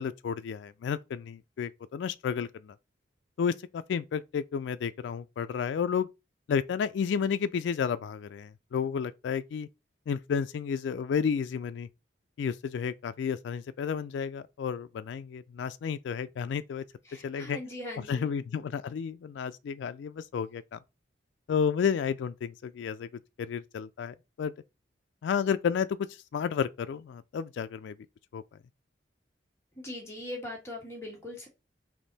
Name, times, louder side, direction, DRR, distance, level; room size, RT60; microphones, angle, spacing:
voice 1, 0.0-2.8 3.4-6.1 6.5-9.7 10.1-11.9 12.4-16.8 17.2-17.6 18.1-20.8 21.5-23.1 23.4-24.5 25.2-27.9 28.3-28.4, left 7 dB, 75° left, 0.3 m, -31 dB
voice 2, 17.1-18.3 29.8-31.5, left 1 dB, 15° left, 1.4 m, -40 dB
3.6 x 2.8 x 3.9 m
head